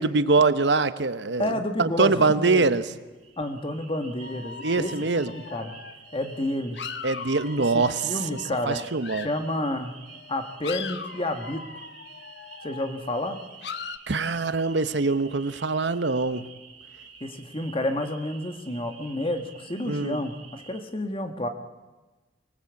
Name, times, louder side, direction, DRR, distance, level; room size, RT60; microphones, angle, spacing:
voice 1, 0.0-2.8 4.6-5.3 7.0-8.1 8.7-9.3 14.1-16.5 19.9-20.2, right 3 dB, 80° right, 12 dB, 1.0 m, -23 dB
voice 2, 1.4-2.6 3.4-4.9 5.2-5.7 6.1-6.8 7.5-8.8 9.2-9.9 10.3-11.6 12.6-13.4 17.2-21.5, left 1 dB, 30° left, 6 dB, 1.7 m, -30 dB
sound 1, 3.1-20.8, right 6 dB, 35° right, 5.0 m, -49 dB
sound 2, 4.2-9.6 10.1-14.0, left 6 dB, 70° left, 1.0 m, -40 dB
24.0 x 18.5 x 8.3 m, 1.2 s
head